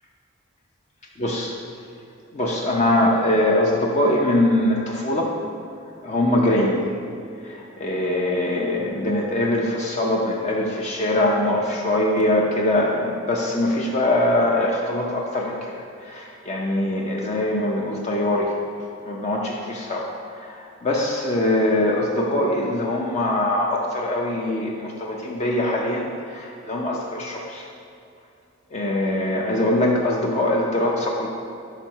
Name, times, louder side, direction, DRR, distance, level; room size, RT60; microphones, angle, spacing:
voice 1, 1.2-1.6 2.3-5.3 6.0-6.8 7.4-18.5 19.1-27.7 28.7-31.3, left 1 dB, 35° left, -2 dB, 0.5 m, -22 dB
5.5 x 5.0 x 4.5 m, 2.6 s
head